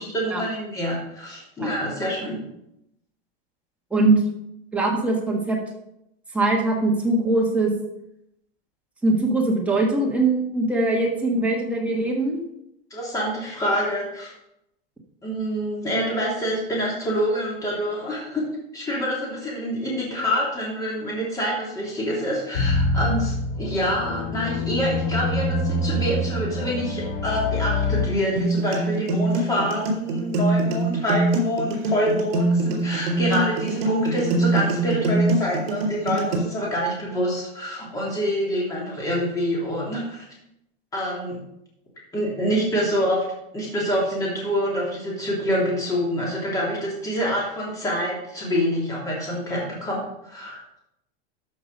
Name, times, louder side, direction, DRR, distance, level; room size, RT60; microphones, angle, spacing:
voice 1, 0.1-2.4 12.9-14.3 15.2-18.4 18.7-40.3 40.9-41.4 42.1-43.2 43.5-50.6, equal, 10° left, -5 dB, 3.0 m, -26 dB
voice 2, 3.9-4.2 4.7-5.6 6.3-7.7 9.0-12.4, right 2 dB, 5° right, -2 dB, 1.5 m, -21 dB
sound 1, 22.5-28.1, left 2 dB, 65° left, 2.8 m, -25 dB
sound 2, 28.4-36.4, right 2 dB, 75° right, 4.0 m, -23 dB
13.0 x 6.1 x 5.3 m, 0.82 s
supercardioid pair, 165°, 29 cm